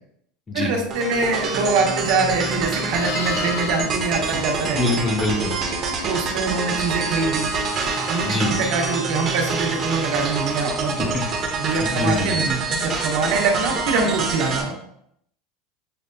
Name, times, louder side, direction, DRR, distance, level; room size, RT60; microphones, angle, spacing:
voice 1, 0.5-5.1 6.1-7.5 8.1-11.1 11.6-14.7, right 4 dB, 65° right, 1 dB, 0.9 m, -24 dB
sound 1, 0.9-14.6, right 4 dB, 35° right, 0.7 m, -26 dB
Livestock farm animals working animals, 2.2-5.5 9.8-10.1, left 9 dB, 75° left, 0.4 m, -36 dB
voice 2, 4.7-5.6 8.2-8.5 11.0-11.2 11.9-12.3, left 2 dB, 20° left, 2 dB, 0.7 m, -23 dB
6.6 x 2.5 x 2.2 m, 0.72 s
supercardioid pair, 145°, 0 cm